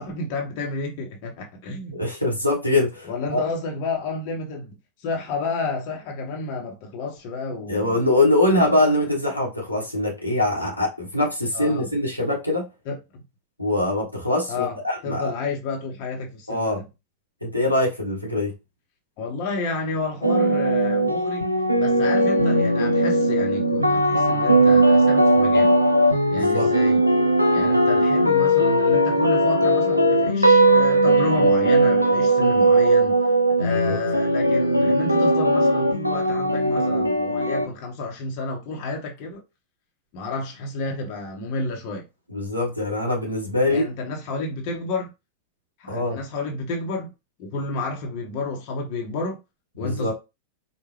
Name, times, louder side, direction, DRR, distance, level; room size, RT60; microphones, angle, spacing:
voice 1, 0.0-2.0 3.0-8.0 8.5-9.1 11.5-11.9 12.8-13.0 14.5-14.8 15.0-16.9 19.2-25.8 26.3-27.0 27.5-33.3 33.6-39.4 40.1-42.0 43.7-45.1 45.8-47.1 47.4-49.4 49.8-50.1, left 3 dB, 45° left, 1.2 m, -31 dB
voice 2, 1.9-3.4 7.7-12.7 13.6-15.3 16.5-16.8 17.4-18.5 26.3-26.7 33.8-34.0 42.3-43.8 45.9-46.2 49.8-50.1, left 2 dB, 90° left, 1.3 m, -23 dB
sound 1, 20.2-37.7, right 1 dB, 90° right, 0.5 m, -19 dB
4.7 x 2.5 x 3.2 m
figure-of-eight pair, 90°, 0 cm